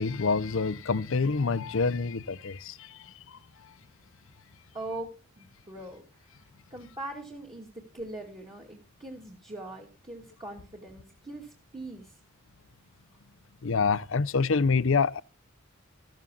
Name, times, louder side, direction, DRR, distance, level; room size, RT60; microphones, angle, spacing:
voice 1, 0.0-3.4 13.6-15.2, left 4 dB, 70° left, 0.7 m, -27 dB
voice 2, 4.7-6.4 6.7-12.2, right 2 dB, 25° right, 2.6 m, -42 dB
14.5 x 14.5 x 2.5 m
head